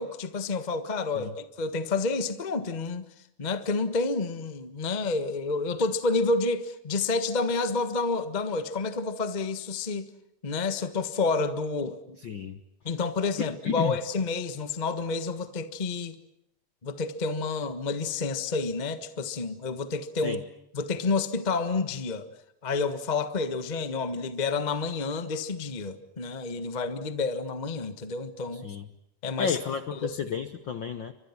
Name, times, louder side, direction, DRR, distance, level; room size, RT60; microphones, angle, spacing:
voice 1, 0.0-3.1 3.4-10.1 10.4-12.2 12.8-16.2 16.8-20.4 20.7-22.3 22.6-28.7 29.2-29.6 29.9-30.2, left 3 dB, 55° left, 0.4 m, -29 dB
voice 2, 12.2-12.6 13.4-14.0 20.2-20.4 28.5-28.9 29.4-31.1, left 7 dB, 70° left, 1.1 m, -31 dB
30.0 x 24.5 x 5.9 m
omnidirectional pair, 3.6 m